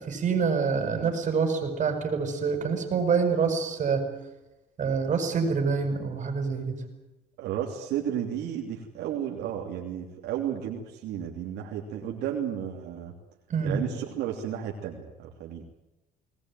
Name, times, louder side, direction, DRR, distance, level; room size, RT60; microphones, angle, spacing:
voice 1, 0.0-4.1 4.8-6.8 13.5-13.8, right 5 dB, 45° right, 5 dB, 6.6 m, -26 dB
voice 2, 7.4-13.1 13.6-15.6, right 9 dB, 80° right, 0 dB, 3.2 m, -33 dB
20.5 x 20.0 x 9.2 m, 0.98 s
cardioid pair, 110°, 17 cm